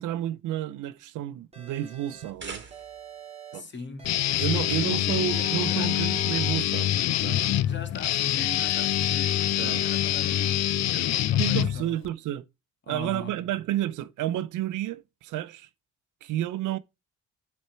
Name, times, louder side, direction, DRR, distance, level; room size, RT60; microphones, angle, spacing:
voice 1, 0.0-2.6 3.5-3.7 4.4-6.9 7.2-7.4 9.6-9.8 11.4-12.5 12.9-15.7 16.2-16.8, right 13 dB, 85° right, 0.6 m, -31 dB
sound 1, 1.5-2.3 2.7-3.6 4.0-4.9 5.3-6.6, right 6 dB, 20° right, 2.2 m, -46 dB
sound 2, 2.1-3.2, right 5 dB, 35° right, 2.0 m, -42 dB
voice 2, 3.5-6.1 7.6-12.0 12.8-13.4, left 3 dB, 40° left, 1.9 m, -41 dB
Guitar, 4.0-12.1, left 12 dB, 60° left, 0.6 m, -25 dB
8.8 x 4.3 x 4.3 m
cardioid pair, 90°, 30 cm